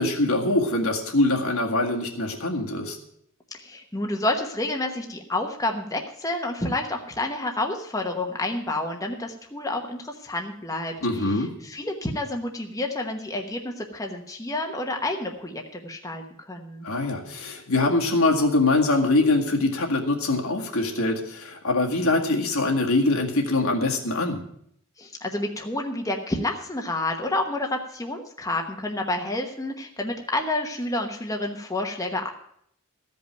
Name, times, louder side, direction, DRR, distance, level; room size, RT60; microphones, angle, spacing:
voice 1, 0.0-3.0 11.0-11.5 16.8-24.4, left 2 dB, 75° left, 0 dB, 2.0 m, -23 dB
voice 2, 3.5-16.8 25.0-32.3, left 2 dB, 15° left, 2 dB, 1.1 m, -29 dB
14.5 x 5.3 x 9.2 m, 0.71 s
head